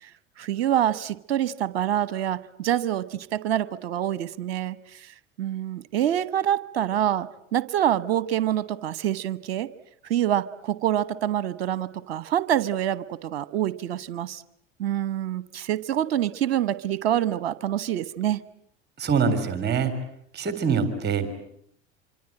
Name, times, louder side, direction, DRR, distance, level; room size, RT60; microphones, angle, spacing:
voice 1, 0.4-5.1 5.4-9.7 10.1-14.4 14.8-18.4, right 11 dB, 65° right, 17 dB, 1.2 m, -26 dB
voice 2, 19.0-20.0 20.3-21.3, right 6 dB, 30° right, 10 dB, 3.7 m, -24 dB
26.5 x 26.0 x 8.8 m, 0.71 s
figure-of-eight pair, 70°, 33 cm